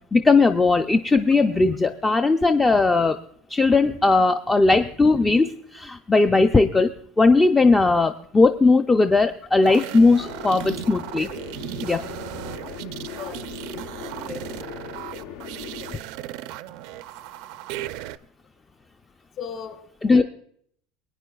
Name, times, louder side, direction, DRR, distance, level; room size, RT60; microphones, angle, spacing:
voice 1, 0.1-3.2 3.5-11.3 11.8-12.0 20.0-20.2, left 3 dB, 10° left, 7 dB, 0.4 m, -18 dB
sound 1, 9.6-18.2, right 14 dB, 65° right, 0.4 m, -36 dB
sound 2, 10.2-16.0, left 11 dB, 75° left, 0.7 m, -39 dB
voice 2, 13.1-13.4 14.2-14.4 19.4-20.2, left 7 dB, 40° left, 9 dB, 1.7 m, -37 dB
23.5 x 9.6 x 2.3 m, 0.63 s
cardioid pair, 155°, 0 cm